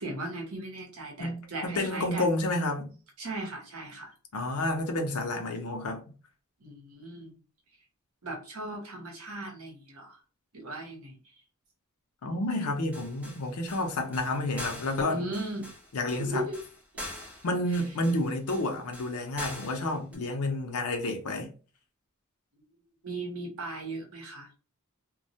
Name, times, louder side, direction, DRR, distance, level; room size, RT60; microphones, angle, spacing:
voice 1, 0.0-2.3 3.2-4.1 6.6-7.4 8.2-10.2 10.5-11.2 15.1-15.7 16.2-16.6 16.9-17.0 23.0-24.6, right 2 dB, 80° right, 0.8 m, -37 dB
voice 2, 1.2-2.9 4.3-6.0 12.2-15.2 15.9-16.4 17.4-21.5, left 2 dB, 90° left, 0.6 m, -30 dB
sound 1, 12.9-20.2, left 1 dB, 5° right, 0.4 m, -43 dB
2.2 x 2.0 x 2.7 m
head